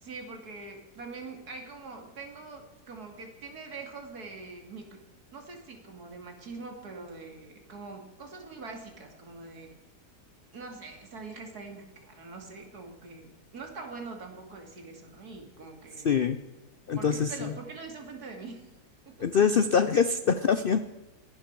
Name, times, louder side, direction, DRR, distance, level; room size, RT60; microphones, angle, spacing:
voice 1, 0.0-5.0 5.3-9.8 10.5-16.1 16.9-18.7 19.1-19.3, right 3 dB, 70° right, 3 dB, 3.0 m, -43 dB
voice 2, 16.0-16.4 16.9-17.5 19.2-20.8, left 6 dB, 60° left, 11 dB, 0.5 m, -24 dB
30.0 x 10.5 x 4.7 m, 1.1 s
omnidirectional pair, 1.7 m